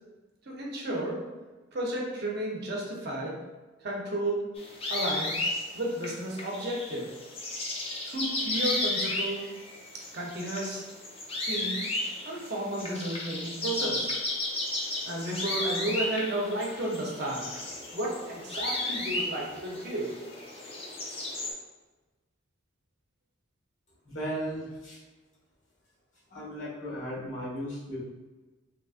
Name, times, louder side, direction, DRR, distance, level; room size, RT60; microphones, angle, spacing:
voice 1, 0.5-1.2 1.7-3.4 3.8-4.5 4.9-5.4 5.7-7.1 8.0-9.5 9.9-10.8 11.4-11.9 12.2-14.2 15.1-17.7 17.9-20.1, right 1 dB, 50° right, -2 dB, 0.7 m, -33 dB
sound 1, 4.6-21.5, left 2 dB, 30° left, 0.5 m, -34 dB
voice 2, 24.0-25.0 26.3-28.0, equal, 70° left, -7 dB, 1.4 m, -36 dB
3.9 x 2.9 x 2.4 m, 1.2 s
head